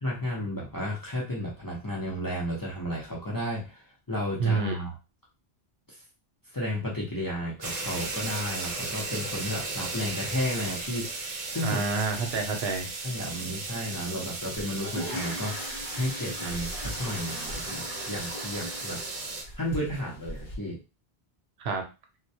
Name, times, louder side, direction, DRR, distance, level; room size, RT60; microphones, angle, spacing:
voice 1, 0.0-4.9 5.9-6.0 6.5-11.8 13.0-19.0 19.6-20.8, equal, 25° left, -5 dB, 0.5 m, -33 dB
voice 2, 4.4-4.9 11.6-12.9 21.6-21.9, right 4 dB, 80° right, 3 dB, 0.9 m, -28 dB
sound 1, 7.6-19.4, right 3 dB, 50° right, 0.6 m, -36 dB
sound 2, 14.6-20.6, equal, 55° left, 0.9 m, -39 dB
2.2 x 2.1 x 2.6 m, 0.29 s
omnidirectional pair, 1.1 m